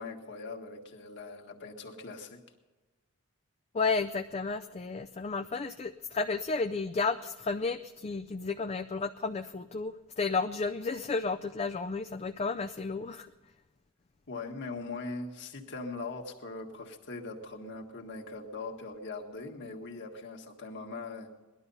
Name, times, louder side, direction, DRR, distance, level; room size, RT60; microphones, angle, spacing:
voice 1, 0.0-2.4 14.3-21.3, left 3 dB, 55° left, 3 dB, 1.8 m, -41 dB
voice 2, 3.7-13.3, left 4 dB, 30° left, 8 dB, 0.4 m, -32 dB
19.0 x 12.0 x 5.5 m, 1.2 s
head